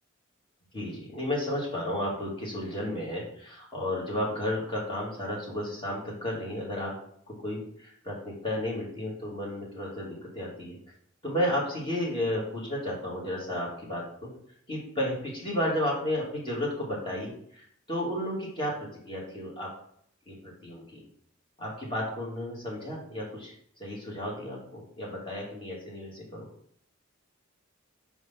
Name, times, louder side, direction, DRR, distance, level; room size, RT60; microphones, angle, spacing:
voice 1, 0.7-6.9 7.3-10.8 11.2-14.3 14.7-18.7 19.1-19.7 20.3-21.0 21.6-23.5 23.8-26.5, left 1 dB, 25° left, -4 dB, 2.4 m, -33 dB
5.1 x 4.9 x 5.7 m, 0.65 s
head